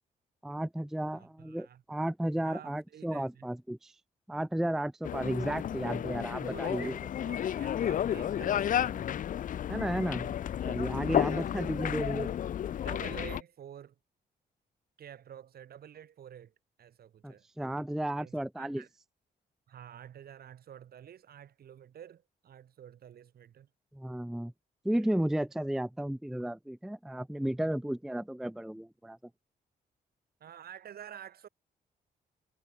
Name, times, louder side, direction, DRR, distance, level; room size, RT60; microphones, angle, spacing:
voice 1, 0.4-3.9 4.3-6.9 9.7-10.4 10.6-12.3 17.2-18.8 23.9-24.5 24.8-29.2, right 1 dB, ahead, 0.4 m, -33 dB
voice 2, 1.1-1.8 2.4-3.5 6.4-9.3 11.1-11.5 12.8-13.9 15.0-17.5 18.2-18.9 19.7-23.7 25.0-25.1 30.4-31.5, right 9 dB, 65° right, 6.5 m, -49 dB
sound 1, 5.0-13.4, left 10 dB, 55° left, 0.5 m, -32 dB
cardioid pair, 100°, 17 cm